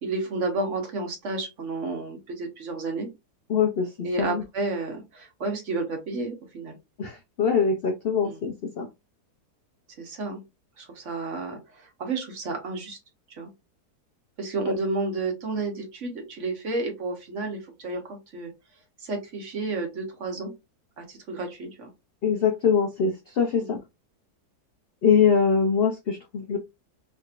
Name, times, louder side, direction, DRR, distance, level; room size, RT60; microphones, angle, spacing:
voice 1, 0.0-3.1 4.0-6.8 8.2-8.4 10.0-10.4 10.8-13.0 13.4-13.5 14.4-18.5 19.0-20.5 21.0-21.9 23.6-23.8, right 3 dB, 55° right, 3 dB, 1.2 m, -31 dB
voice 2, 3.5-4.4 7.0-8.9 22.2-23.8 25.0-26.6, left 6 dB, 80° left, 3 dB, 0.5 m, -23 dB
3.3 x 2.9 x 2.4 m, 0.23 s
omnidirectional pair, 1.7 m